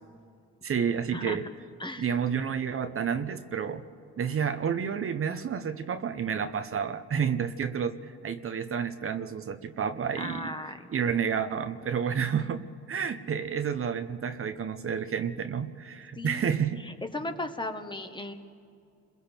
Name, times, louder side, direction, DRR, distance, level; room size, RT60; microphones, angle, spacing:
voice 1, 0.6-1.4 2.0-3.8 4.2-16.8, right 7 dB, 45° right, 8 dB, 1.0 m, -30 dB
voice 2, 10.2-10.9 16.1-18.3, left 2 dB, 15° left, 6 dB, 1.4 m, -36 dB
30.0 x 22.0 x 4.5 m, 2.3 s
cardioid pair, 90°, 30 cm